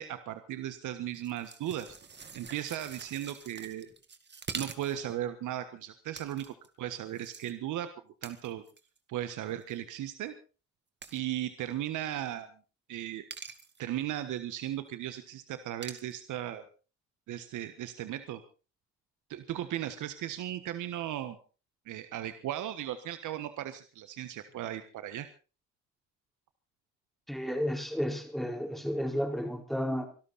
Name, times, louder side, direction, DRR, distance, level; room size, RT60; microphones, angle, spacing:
voice 1, 0.0-2.0 2.3-3.9 4.5-7.9 8.2-8.6 9.1-10.4 11.1-12.5 12.9-13.2 13.8-16.6 17.3-18.4 19.3-21.4 21.9-25.3, right 12 dB, 80° right, 1.4 m, -36 dB
sound 1, 1.1-5.2 6.1-6.7 7.1-7.5 8.2-9.0 9.5-9.7 11.0-11.3 13.3-13.8 15.8-16.1, right 5 dB, 35° right, 2.2 m, -44 dB
voice 2, 27.3-30.1, equal, ahead, 4.6 m, -32 dB
24.5 x 13.0 x 4.1 m
cardioid pair, 90°, 30 cm